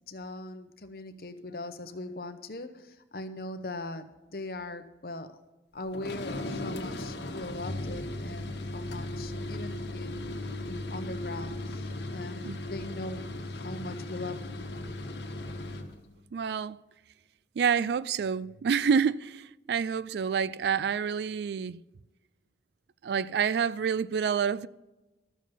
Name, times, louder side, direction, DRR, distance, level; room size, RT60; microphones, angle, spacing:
voice 1, 0.1-5.3 5.7-14.7, left 2 dB, 55° left, 0.8 m, -40 dB
sound 1, 5.9-16.0, left 1 dB, 80° left, 1.2 m, -37 dB
voice 2, 16.3-16.8 17.6-21.8 23.0-24.7, right 6 dB, 70° right, 0.3 m, -28 dB
13.0 x 7.2 x 5.6 m
head